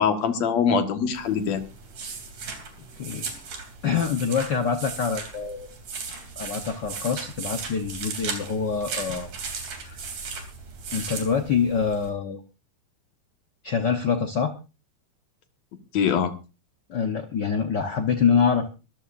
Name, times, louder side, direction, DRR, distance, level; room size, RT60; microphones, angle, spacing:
voice 1, 0.0-1.6 15.9-16.3, left 6 dB, 60° left, 7 dB, 2.7 m, -23 dB
sound 1, 1.1-12.1, right 5 dB, 80° right, 4.8 m, -37 dB
voice 2, 3.0-3.3 3.8-5.7 6.4-9.3 9.8-10.1 10.9-12.4 13.6-14.5 16.9-18.7, left 6 dB, 85° left, 6 dB, 0.9 m, -25 dB
23.5 x 14.0 x 2.6 m, 0.31 s
omnidirectional pair, 3.6 m